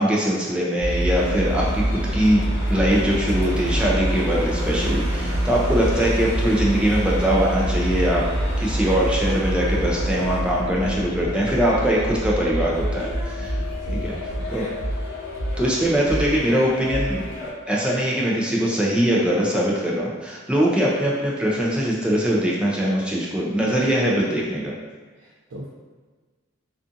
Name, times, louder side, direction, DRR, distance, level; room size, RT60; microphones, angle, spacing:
voice 1, 0.0-2.4 2.7-8.2 8.6-13.6 14.0-14.1 14.5-14.7 15.6-24.7, right 1 dB, 5° right, -4 dB, 0.4 m, -22 dB
sound 1, 0.8-17.5, equal, 60° left, 0.6 m, -26 dB
sound 2, 1.1-10.4, equal, 40° right, 0.9 m, -36 dB
voice 2, 13.4-14.5 25.2-25.7, right 1 dB, 65° right, -4 dB, 0.4 m, -39 dB
2.5 x 2.4 x 2.5 m, 1.4 s
head